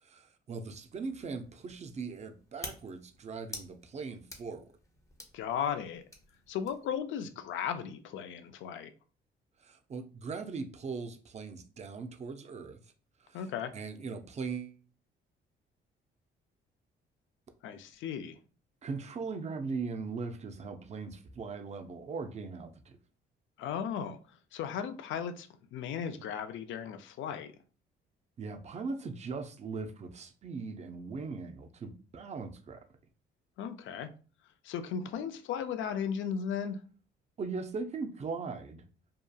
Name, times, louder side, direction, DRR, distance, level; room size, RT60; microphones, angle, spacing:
voice 1, 0.0-4.6 9.6-12.8 13.2-13.5 13.7-14.8 18.8-22.9 28.4-32.8 37.4-38.8, right 4 dB, 35° right, 0.4 m, -39 dB
sound 1, 0.7-7.0, left 2 dB, 15° left, 0.6 m, -50 dB
voice 2, 5.3-6.0 6.5-8.9 13.3-13.7 17.6-18.4 23.6-24.2 24.5-27.5 33.6-34.1 34.6-36.8, left 8 dB, 75° left, 0.4 m, -36 dB
2.8 x 2.3 x 2.2 m
cardioid pair, 90°, 20 cm